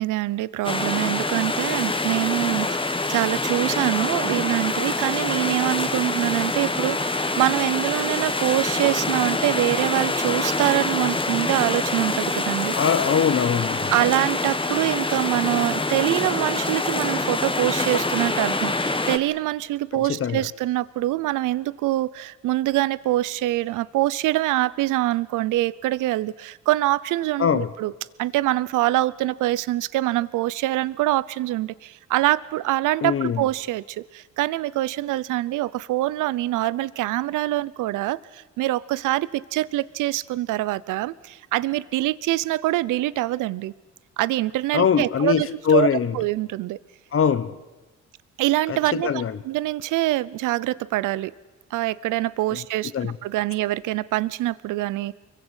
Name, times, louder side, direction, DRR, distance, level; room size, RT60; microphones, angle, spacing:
voice 1, 0.0-12.7 13.9-27.9 28.2-43.7 44.2-45.9 46.1-46.8 48.4-51.3 51.7-55.1, right 16 dB, 90° right, 20 dB, 0.7 m, -24 dB
sound 1, 0.6-19.2, left 2 dB, 15° left, 1.8 m, -25 dB
voice 2, 12.7-13.9 20.2-20.4 27.4-27.7 33.0-33.4 44.7-46.1 47.1-47.5 48.7-49.3 52.5-52.6 52.9-53.1, left 7 dB, 45° left, 13 dB, 1.1 m, -22 dB
25.5 x 23.0 x 8.1 m, 1.2 s
cardioid pair, 90°, 30 cm